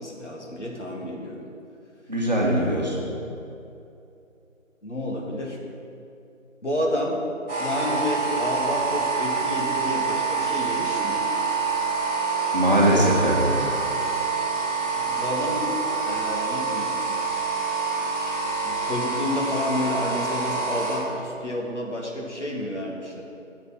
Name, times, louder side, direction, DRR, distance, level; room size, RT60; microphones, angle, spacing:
voice 1, 0.0-1.5 2.5-3.1 4.8-5.7 6.6-7.2 7.6-11.3 14.9-15.7 16.0-17.0 18.6-23.2, left 1 dB, 60° left, -2 dB, 2.4 m, -30 dB
voice 2, 2.1-3.0 12.5-13.7, right 1 dB, 35° right, -4 dB, 1.6 m, -21 dB
sound 1, 7.5-21.0, right 4 dB, 10° right, 2.5 m, -26 dB
10.0 x 7.9 x 6.0 m, 2.7 s
figure-of-eight pair, 170°, 39 cm